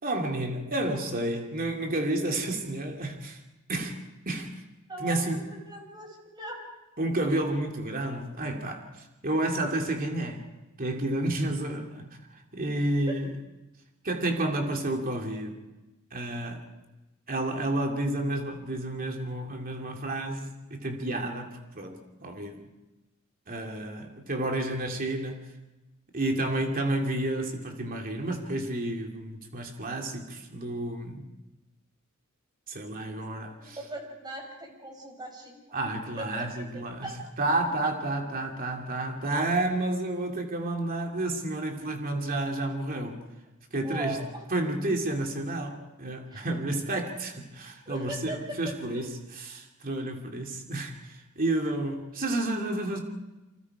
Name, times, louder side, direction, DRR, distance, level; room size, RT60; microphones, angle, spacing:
voice 1, 0.0-3.4 3.7-4.0 4.3-4.5 5.0-5.4 7.0-10.5 10.8-13.3 14.0-15.6 16.1-16.7 17.3-22.7 23.5-25.5 26.1-31.3 32.7-33.8 35.7-37.1 37.4-43.2 43.7-44.2 44.5-53.0, right 1 dB, 45° right, 2.8 m, -31 dB
voice 2, 4.9-6.6 33.2-35.6 36.2-36.5 37.0-37.2 37.8-37.9 39.3-39.4 43.8-44.4 46.3-46.5 47.9-49.0, right 2 dB, 20° right, 5.2 m, -39 dB
28.5 x 26.5 x 5.0 m
head